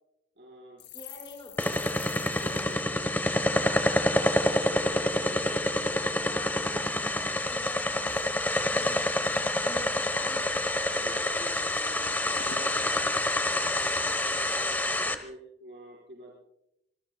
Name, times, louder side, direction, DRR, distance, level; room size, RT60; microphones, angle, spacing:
voice 1, 0.3-0.8 2.1-3.1 10.8-12.9 13.2-16.4, right 1 dB, 70° right, -3 dB, 4.9 m, -48 dB
sound 1, 0.8-4.3 4.6-4.9 5.1-5.8 6.3-7.1 7.4-9.0 9.3-9.6 9.8-10.4 10.8-10.9 11.1-11.8 12.1-12.2 12.4-14.3 14.8-15.1, left 7 dB, 75° left, 4.1 m, -50 dB
voice 2, 0.9-2.0 2.3-2.7 3.3-5.7 6.1-9.2 9.6-11.8, left 1 dB, 25° left, 1 dB, 5.3 m, -46 dB
sound 2, 1.6-15.2, left 1 dB, 10° left, 1.2 m, -27 dB
25.5 x 22.5 x 2.3 m, 0.82 s
head